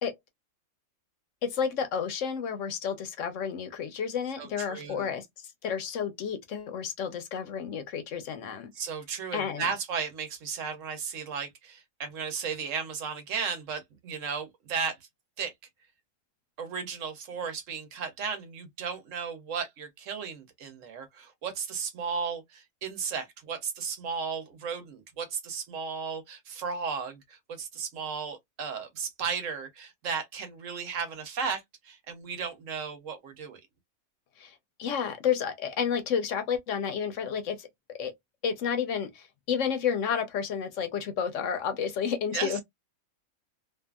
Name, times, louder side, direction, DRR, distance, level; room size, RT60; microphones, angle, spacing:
voice 1, 1.4-5.3 5.6-8.7 9.3-9.7 34.4-37.7 38.0-38.1 38.4-42.6, left 7 dB, 65° left, 0.9 m, -31 dB
voice 2, 4.4-5.1 8.7-14.9 15.4-15.5 16.6-31.6 31.9-33.6 42.3-42.6, right 6 dB, 65° right, 1.1 m, -35 dB
2.7 x 2.4 x 2.2 m
omnidirectional pair, 1.5 m